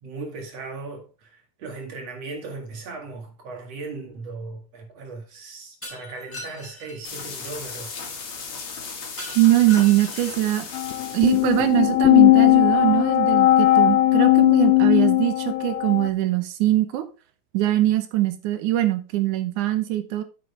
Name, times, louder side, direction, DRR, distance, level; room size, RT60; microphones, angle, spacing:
voice 1, 0.0-7.9, right 3 dB, 60° right, 3.0 m, -37 dB
Shatter, 5.8-7.0 9.2-10.5, left 2 dB, 5° left, 4.2 m, -39 dB
sound 1, 7.0-11.8, left 5 dB, 60° left, 3.2 m, -36 dB
voice 2, 9.4-10.7 11.1-17.1 17.5-20.2, right 14 dB, 90° right, 2.5 m, -22 dB
sound 2, 10.7-16.1, left 16 dB, 80° left, 1.4 m, -18 dB
9.0 x 7.6 x 3.3 m
omnidirectional pair, 3.4 m